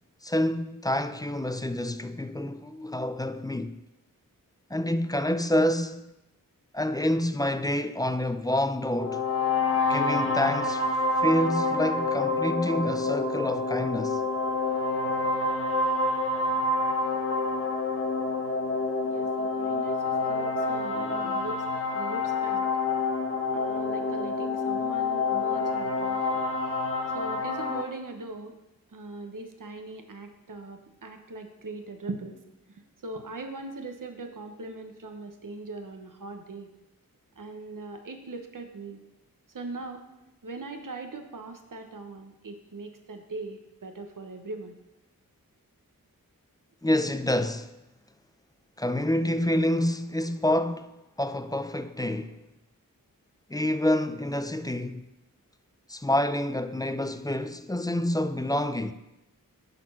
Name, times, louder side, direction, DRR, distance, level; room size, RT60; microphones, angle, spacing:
voice 1, 0.2-3.8 4.7-6.0 6.7-9.3 9.9-10.9 11.2-14.2 46.8-47.8 48.8-50.9 51.2-52.4 53.5-55.1 55.9-58.9, left 1 dB, 10° left, 0.4 m, -27 dB
sound 1, 9.0-27.8, left 3 dB, 40° left, 1.1 m, -27 dB
voice 2, 19.0-21.6 21.9-22.7 23.5-26.4 27.1-28.6 28.9-32.3 32.7-36.7 37.4-39.0 39.5-40.1 40.4-44.8, right 3 dB, 65° right, 1.1 m, -40 dB
10.5 x 4.2 x 5.7 m
wide cardioid pair, 80°, 35 cm